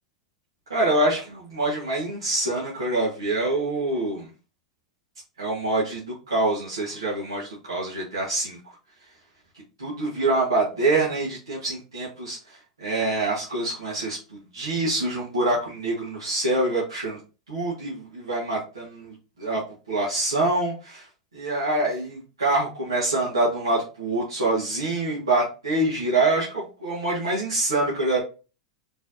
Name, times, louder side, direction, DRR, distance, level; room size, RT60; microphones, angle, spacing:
voice 1, 0.7-4.3 5.4-8.6 9.8-17.2 17.5-19.6 19.9-21.1 21.3-28.2, right 2 dB, 75° right, -6 dB, 1.5 m, -25 dB
4.3 x 3.4 x 2.8 m, 0.33 s
figure-of-eight pair, 90°, 3 cm